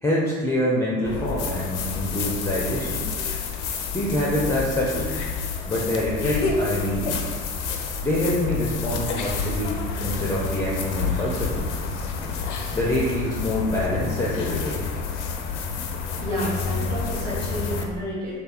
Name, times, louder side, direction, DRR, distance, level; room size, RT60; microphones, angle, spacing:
voice 1, 0.0-3.0 3.9-5.2 5.7-7.2 8.0-11.6 12.7-14.8, left 1 dB, 10° left, -5 dB, 0.4 m, -25 dB
sound 1, 1.0-17.8, left 5 dB, 70° left, 0.5 m, -29 dB
voice 2, 16.2-18.4, equal, 80° right, -9 dB, 1.2 m, -30 dB
3.2 x 2.8 x 2.4 m, 1.5 s
figure-of-eight pair, 55°, 38 cm